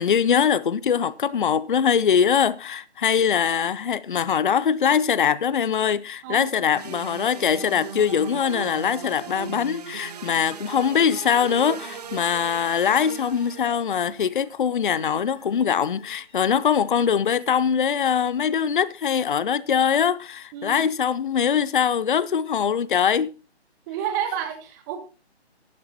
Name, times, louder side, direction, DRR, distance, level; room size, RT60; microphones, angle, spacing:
voice 1, 0.0-23.3, left 7 dB, 50° left, 0.6 m, -22 dB
sound 1, 6.7-13.8, right 7 dB, 35° right, 0.9 m, -38 dB
sound 2, 11.4-17.1, left 3 dB, 20° left, 3.7 m, -54 dB
voice 2, 20.5-20.8 23.9-25.0, right 9 dB, 15° right, 1.4 m, -30 dB
15.5 x 11.0 x 2.9 m
figure-of-eight pair, 150°, 33 cm